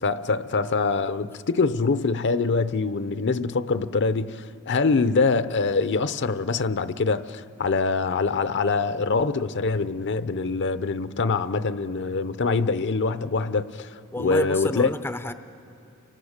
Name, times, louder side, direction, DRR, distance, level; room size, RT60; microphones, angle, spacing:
voice 1, 0.0-13.9 14.2-14.9, left 4 dB, 55° left, 0.7 m, -24 dB
voice 2, 14.1-15.3, left 1 dB, 10° left, 0.5 m, -29 dB
29.5 x 24.5 x 6.6 m
head